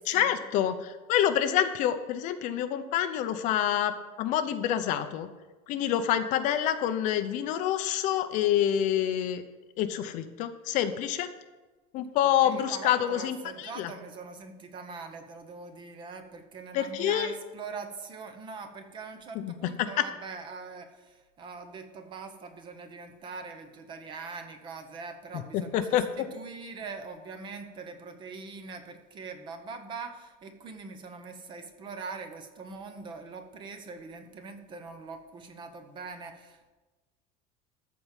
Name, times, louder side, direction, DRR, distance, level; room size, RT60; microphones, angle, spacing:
voice 1, 0.1-5.3 5.7-9.4 9.8-11.3 11.9-13.9 16.7-17.3 19.4-19.7 25.5-26.1, left 10 dB, 45° left, 10 dB, 0.6 m, -27 dB
voice 2, 12.4-36.7, right 4 dB, 25° right, 7 dB, 0.9 m, -42 dB
13.5 x 4.7 x 7.3 m, 1.2 s
cardioid pair, 180°, 18 cm